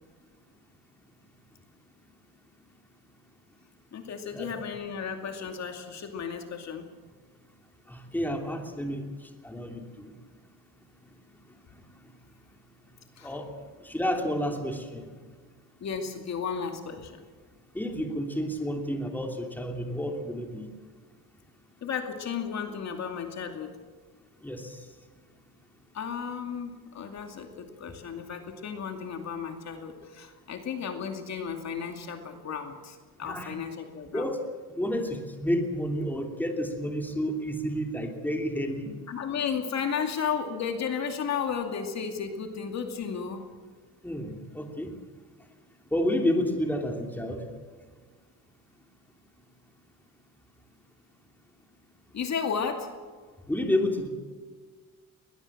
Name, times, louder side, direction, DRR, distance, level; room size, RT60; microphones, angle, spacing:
voice 1, 3.9-6.9 13.2-13.3 15.8-17.2 21.8-23.8 25.9-34.2 39.1-43.4 52.1-52.9, left 6 dB, 50° left, 5 dB, 2.5 m, -34 dB
voice 2, 7.9-9.0 9.4-9.8 13.2-13.5 13.9-15.1 17.7-20.6 24.4-24.6 33.2-33.5 34.1-34.4 34.8-38.9 44.0-44.9 45.9-47.4 53.5-54.1, equal, 5° left, 2 dB, 3.1 m, -30 dB
21.0 x 20.5 x 7.5 m, 1.5 s
cardioid pair, 130°, 34 cm